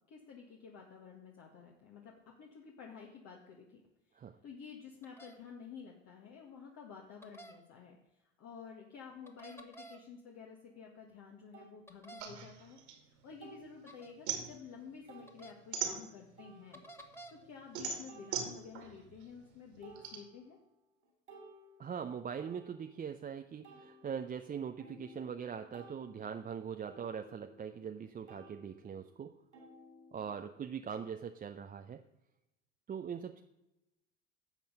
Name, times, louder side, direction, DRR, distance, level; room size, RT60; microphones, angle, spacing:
voice 1, 0.0-3.8 4.1-8.0 8.4-12.8 13.2-16.8 17.3-20.6, left 6 dB, 50° left, 0 dB, 1.7 m, -51 dB
sound 1, 5.0-5.3 7.2-7.5 9.3-10.0 11.9-12.3 13.9-14.1 15.3-15.5 16.7-17.3, right 2 dB, 5° left, 1.5 m, -51 dB
sound 2, 10.7-10.8 11.5-11.7 13.4-13.8 14.4-14.5 15.1-15.3 16.4-17.0 18.1-18.9 19.4-19.5 19.8-20.7 21.0-23.2 23.6-28.0 28.3-30.6, right 1 dB, 85° right, 3.6 m, -57 dB
sound 3, 12.2-13.7 14.0-16.5 17.0-20.2, right 7 dB, 70° right, 2.4 m, -40 dB
voice 2, 21.8-29.4 30.1-32.0 32.9-33.4, right 7 dB, 25° right, 6 dB, 0.6 m, -42 dB
12.0 x 7.3 x 5.5 m, 0.94 s
hypercardioid pair, 70°, 34 cm